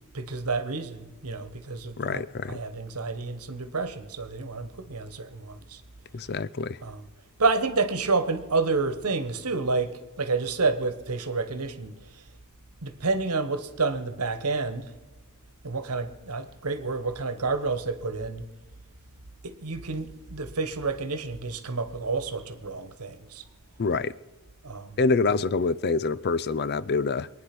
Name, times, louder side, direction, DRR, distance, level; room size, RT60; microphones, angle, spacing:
voice 1, 0.1-5.8 6.8-7.0 7.4-12.2 12.8-14.9 15.6-18.5 19.4-23.4 24.6-25.0, right 3 dB, 80° right, 1.3 m, -29 dB
voice 2, 2.0-2.6 6.1-6.8 23.8-24.2 25.0-27.3, left 4 dB, 45° left, 0.5 m, -26 dB
23.0 x 9.5 x 6.1 m
head